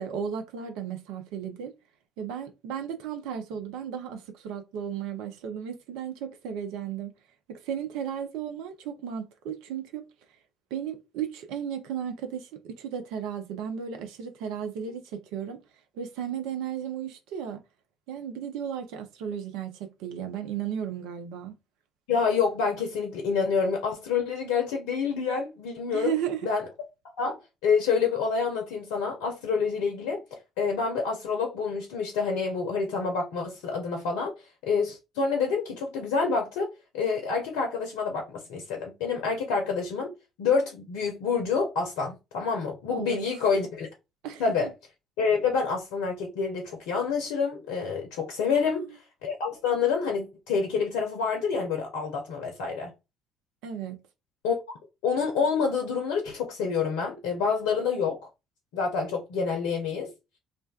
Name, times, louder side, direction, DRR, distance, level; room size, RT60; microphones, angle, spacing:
voice 1, 0.0-1.7 2.2-7.1 7.5-10.0 10.7-15.6 15.9-17.6 18.1-21.6 25.9-26.5 42.9-43.2 44.2-44.7 48.5-48.9 53.6-54.0, right 8 dB, 70° right, 0.5 m, -34 dB
voice 2, 22.1-26.1 26.4-26.6 27.2-30.2 30.6-34.4 34.6-40.1 40.4-43.9 44.4-44.7 45.2-48.8 49.2-52.9 54.4-54.6 55.0-58.2 58.7-60.1, left 5 dB, 70° left, 0.6 m, -27 dB
2.5 x 2.2 x 2.3 m
figure-of-eight pair, 50°, 0 cm